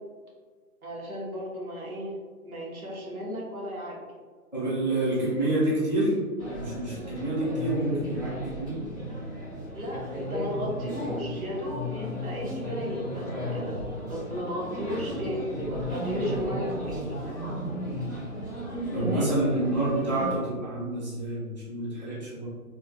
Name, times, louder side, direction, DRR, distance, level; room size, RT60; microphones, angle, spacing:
voice 1, 0.8-2.1 2.4-4.0 9.7-17.0 19.0-19.3, equal, 65° right, -4 dB, 1.3 m, -35 dB
voice 2, 4.5-6.2 6.5-8.9 18.9-22.5, right 1 dB, 30° left, -8 dB, 0.5 m, -28 dB
sound 1, 6.4-20.4, equal, 15° right, 0.9 m, -34 dB
3.3 x 2.8 x 2.3 m, 1.5 s
hypercardioid pair, 175°, 46 cm